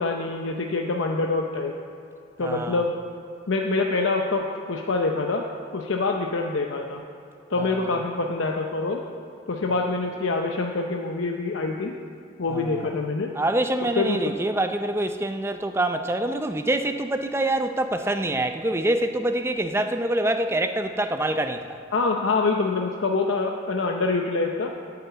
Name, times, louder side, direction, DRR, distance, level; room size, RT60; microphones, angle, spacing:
voice 1, 0.0-1.7 2.4-2.9 3.5-5.4 5.7-7.0 7.5-9.0 9.5-11.9 12.4-13.3 14.0-14.2 21.9-24.7, left 3 dB, 85° left, 2 dB, 0.7 m, -25 dB
voice 2, 2.4-2.8 7.6-7.9 12.5-12.9 13.3-21.8, right 1 dB, 15° right, 7 dB, 0.5 m, -25 dB
8.6 x 8.1 x 8.0 m, 2.6 s
head